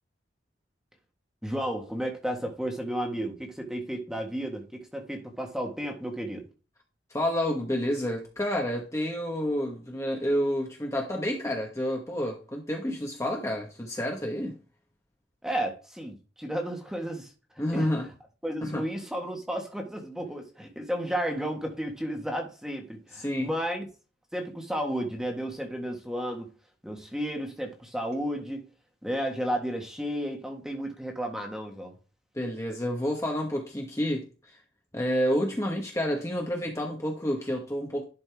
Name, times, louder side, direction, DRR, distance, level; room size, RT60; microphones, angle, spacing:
voice 1, 1.4-6.5 15.4-17.3 17.7-17.9 18.4-23.9 24.3-26.5 26.8-28.7 29.0-31.9, equal, 5° right, 1.6 m, -33 dB
voice 2, 7.1-14.6 17.6-18.1 18.6-18.8 23.2-23.5 32.3-34.3 34.9-38.0, equal, 15° left, 1.4 m, -29 dB
11.0 x 5.2 x 3.6 m
head